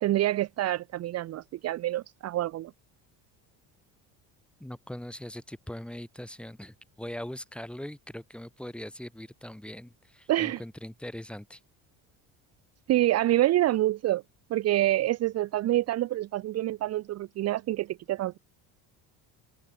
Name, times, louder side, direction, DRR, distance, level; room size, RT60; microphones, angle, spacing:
voice 1, 0.0-2.7 10.3-10.6 12.9-14.2 14.5-18.4, right 14 dB, 45° right, 0.6 m, -27 dB
voice 2, 4.6-11.6, left 1 dB, 5° left, 2.4 m, -41 dB
cardioid pair, 135°, 38 cm